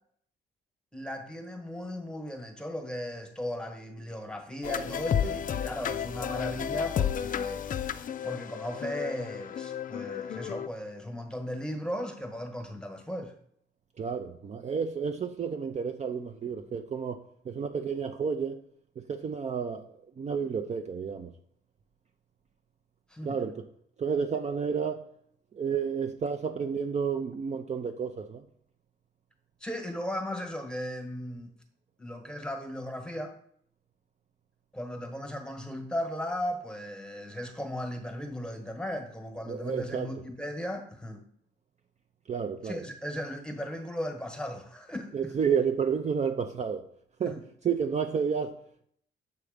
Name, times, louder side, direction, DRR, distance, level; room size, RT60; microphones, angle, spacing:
voice 1, 0.9-7.7 8.2-13.3 23.1-23.4 29.6-31.5 32.0-33.4 34.7-41.2 42.6-45.3 47.3-47.4, equal, 5° left, 1.2 m, -36 dB
sound 1, 4.6-10.7, left 8 dB, 45° left, 0.4 m, -32 dB
voice 2, 14.0-17.2 17.4-18.6 19.0-21.3 23.2-23.6 24.0-25.0 25.5-28.4 39.5-40.1 42.3-42.8 45.1-46.8 47.2-47.4 47.6-48.5, right 6 dB, 35° right, 0.5 m, -31 dB
7.0 x 3.2 x 5.0 m
cardioid pair, 90°, 20 cm